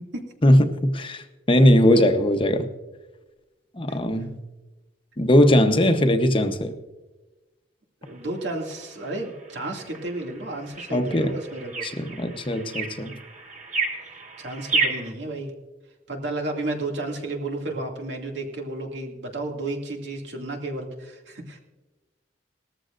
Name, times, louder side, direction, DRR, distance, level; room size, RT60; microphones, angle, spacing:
voice 1, 0.4-2.7 3.8-4.4 5.2-6.7 10.9-11.3 11.8-13.1, left 1 dB, 30° left, 7 dB, 0.9 m, -19 dB
sound 1, 8.1-15.1, right 4 dB, 45° right, 3.2 m, -32 dB
voice 2, 8.1-11.9 14.4-15.5 16.1-21.6, right 2 dB, 80° right, 1 dB, 2.4 m, -32 dB
19.0 x 14.0 x 2.5 m, 1.1 s
head